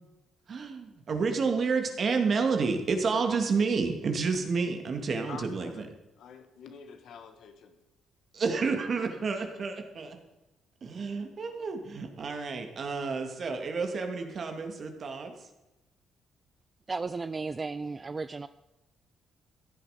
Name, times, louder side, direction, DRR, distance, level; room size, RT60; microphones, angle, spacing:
voice 1, 0.5-5.9 8.3-10.2 10.8-15.3, right 4 dB, 50° right, 5 dB, 2.4 m, -30 dB
voice 2, 5.3-5.8 6.2-7.8 8.9-9.0, left 6 dB, 75° left, 7 dB, 1.8 m, -47 dB
voice 3, 16.9-18.5, right 4 dB, 30° right, 13 dB, 0.4 m, -34 dB
15.0 x 10.5 x 5.2 m, 1.0 s
cardioid pair, 90°, 0 cm